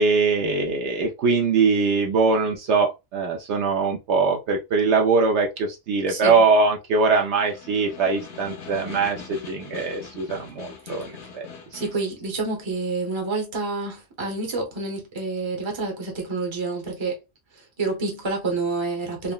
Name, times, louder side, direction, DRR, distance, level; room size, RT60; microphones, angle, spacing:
voice 1, 0.0-11.5, right 4 dB, 70° right, 0.8 m, -22 dB
voice 2, 6.1-6.4 10.8-11.0 11.7-17.2 17.5-19.3, right 3 dB, 25° right, 0.8 m, -28 dB
Snare drum, 7.2-12.1, left 5 dB, 65° left, 1.0 m, -41 dB
3.7 x 2.0 x 2.3 m
omnidirectional pair, 1.3 m